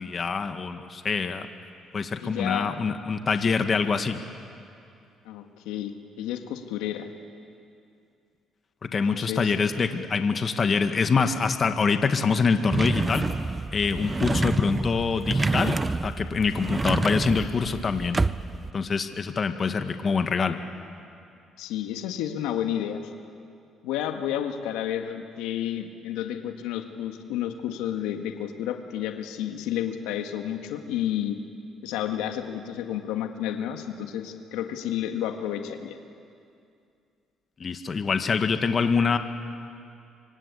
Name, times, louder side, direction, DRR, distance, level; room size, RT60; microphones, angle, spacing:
voice 1, 0.0-1.5 1.9-4.2 8.9-13.3 13.7-18.2 18.7-20.6 37.6-39.2, left 5 dB, 45° left, 7 dB, 1.9 m, -25 dB
voice 2, 2.2-2.7 5.3-7.1 9.1-9.5 21.6-23.1 23.8-31.4 31.8-36.0, left 10 dB, 85° left, 5 dB, 1.7 m, -31 dB
sound 1, 12.7-18.7, right 3 dB, 25° right, 0.6 m, -28 dB
25.0 x 25.0 x 8.6 m, 2.5 s
supercardioid pair, 70°, 0 cm